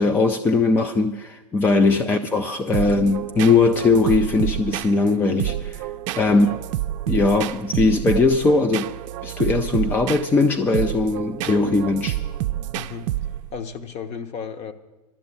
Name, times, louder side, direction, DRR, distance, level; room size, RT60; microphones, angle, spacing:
voice 1, 0.0-5.9 6.2-6.5 7.1-8.9 9.2-12.2, left 3 dB, 10° left, 0.4 m, -20 dB
sound 1, 2.7-13.6, right 13 dB, 50° right, 0.5 m, -29 dB
voice 2, 6.3-6.6 12.7-13.1 13.5-14.7, left 6 dB, 30° left, 1.0 m, -34 dB
12.0 x 6.8 x 9.8 m
hypercardioid pair, 120°, 21 cm